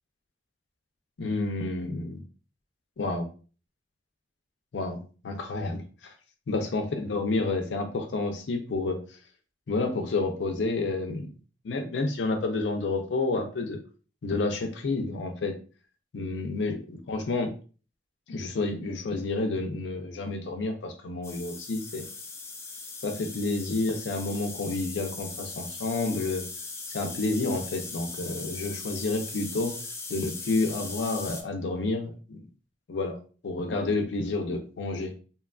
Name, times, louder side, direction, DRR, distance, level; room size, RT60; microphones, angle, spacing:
voice 1, 1.2-2.2 3.0-3.3 4.7-5.8 6.5-9.0 9.7-11.3 11.6-13.8 14.2-15.5 16.1-17.5 18.3-22.0 23.0-26.4 26.9-29.7 30.1-32.4 32.9-33.2 33.4-35.1, left 3 dB, 75° left, 5 dB, 0.4 m, -29 dB
sound 1, 21.2-31.4, left 3 dB, 15° left, 0.3 m, -39 dB
2.8 x 2.3 x 2.3 m, 0.37 s
head